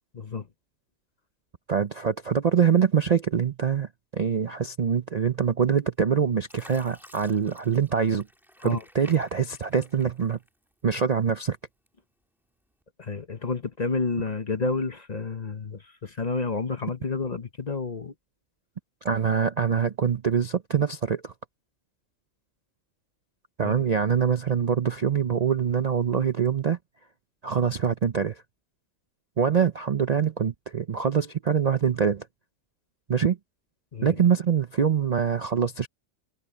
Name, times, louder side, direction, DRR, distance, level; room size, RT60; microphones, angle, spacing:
voice 1, 0.1-0.4 8.6-8.8 13.0-18.1 23.6-23.7 33.9-34.1, left 4 dB, 35° left, 0.9 m, -30 dB
voice 2, 1.7-8.3 8.6-10.4 10.8-11.6 19.0-21.3 23.6-26.8 27.4-28.4 29.4-32.3 33.1-33.4 34.0-35.9, right 7 dB, 45° right, 0.5 m, -24 dB
Fill (with liquid), 5.7-6.1 6.5-10.9 11.3-12.1 12.7-12.8, equal, ahead, 1.9 m, -53 dB
omnidirectional pair, 1.4 m